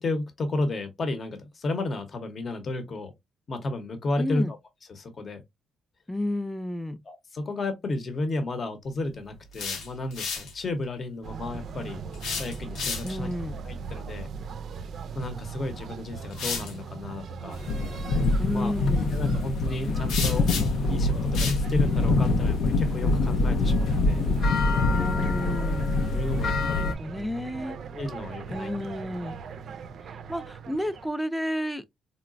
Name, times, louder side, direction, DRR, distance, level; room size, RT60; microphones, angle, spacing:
voice 1, 0.0-3.1 3.5-4.6 4.9-5.4 7.1-12.0 12.4-13.3 13.6-14.3 15.1-17.6 18.5-18.8 19.1-20.5 20.9-24.2 26.1-26.9 27.7-28.8, left 2 dB, 45° left, 0.8 m, -33 dB
voice 2, 4.2-4.5 6.1-7.0 13.0-13.6 18.4-19.2 24.9-25.9 26.6-27.8 28.5-29.4 30.3-31.8, left 1 dB, 5° left, 0.4 m, -31 dB
sound 1, 9.3-10.5 12.1-13.3 15.4-15.5 16.3-16.7 20.1-20.9 21.3-21.6, left 5 dB, 85° left, 0.8 m, -32 dB
sound 2, 11.2-31.1, right 5 dB, 60° right, 0.4 m, -39 dB
sound 3, 17.5-26.9, left 3 dB, 65° left, 0.4 m, -24 dB
3.9 x 2.1 x 2.4 m
cardioid pair, 90°, 0 cm